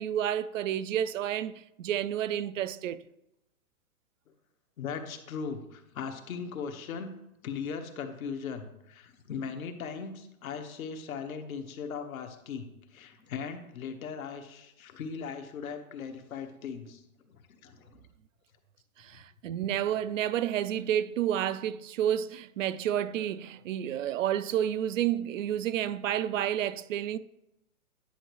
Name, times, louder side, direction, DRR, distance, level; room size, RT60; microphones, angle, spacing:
voice 1, 0.0-3.0 19.0-27.2, right 10 dB, 60° right, 0.5 m, -30 dB
voice 2, 4.8-17.3 17.6-18.0, left 6 dB, 65° left, 1.3 m, -39 dB
10.0 x 5.8 x 3.1 m
hypercardioid pair, 125°, 44 cm